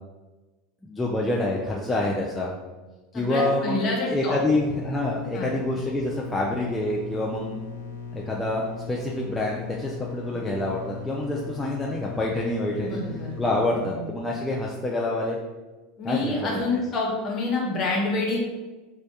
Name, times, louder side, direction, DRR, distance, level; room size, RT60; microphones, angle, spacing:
voice 1, 0.8-2.5 3.1-7.6 8.1-13.0 13.4-15.4 16.0-16.3, left 2 dB, 10° left, -3 dB, 0.3 m, -27 dB
voice 2, 3.1-4.4 5.3-5.5 10.2-10.4 12.8-13.3 13.9-14.1 16.0-18.4, left 2 dB, 40° left, -2 dB, 0.8 m, -27 dB
sound 1, 4.3-13.7, left 5 dB, 80° left, 0.4 m, -38 dB
2.1 x 2.1 x 2.7 m, 1.2 s
hypercardioid pair, 100°, 0 cm